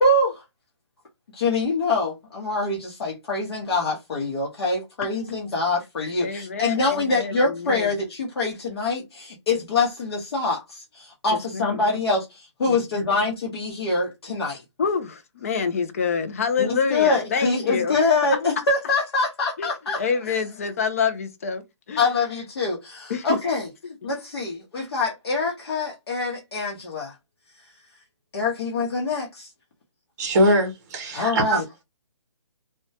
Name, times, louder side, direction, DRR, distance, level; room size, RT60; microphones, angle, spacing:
voice 1, 0.0-0.4 1.3-14.6 16.6-20.0 22.0-23.7 24.0-27.1 28.3-29.5 31.1-31.6, left 3 dB, 55° left, 0.8 m, -25 dB
voice 2, 6.2-7.9 11.3-11.8 12.7-13.1 14.8-18.0 18.6-18.7 19.6-19.7 20.0-22.1 23.1-23.4 23.8-24.0, left 5 dB, 30° left, 0.3 m, -27 dB
voice 3, 30.2-31.8, equal, 35° right, 0.6 m, -22 dB
2.1 x 2.1 x 2.7 m
hypercardioid pair, 160°, 16 cm